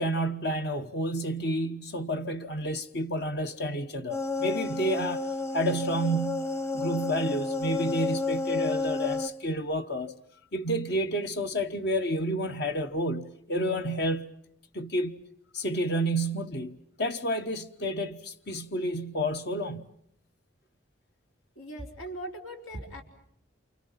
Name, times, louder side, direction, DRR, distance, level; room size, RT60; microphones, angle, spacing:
voice 1, 0.0-5.3 5.5-10.1 10.5-14.3 14.7-15.2 15.5-19.9, equal, 50° left, 1.1 m, -30 dB
sound 1, 4.1-9.3, left 3 dB, 15° left, 1.0 m, -31 dB
voice 2, 21.5-23.0, right 1 dB, 85° left, 4.5 m, -39 dB
29.0 x 28.5 x 5.7 m
head